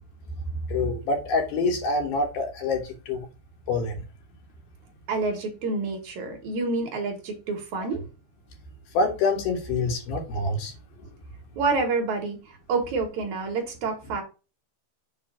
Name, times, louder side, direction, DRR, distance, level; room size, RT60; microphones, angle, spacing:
voice 1, 0.7-3.3 3.7-4.0 8.9-10.7, left 3 dB, 70° left, 2.5 m, -26 dB
voice 2, 5.1-8.0 11.6-12.4 12.7-14.2, right 4 dB, 60° right, 2.0 m, -28 dB
7.5 x 2.6 x 5.8 m
omnidirectional pair, 5.1 m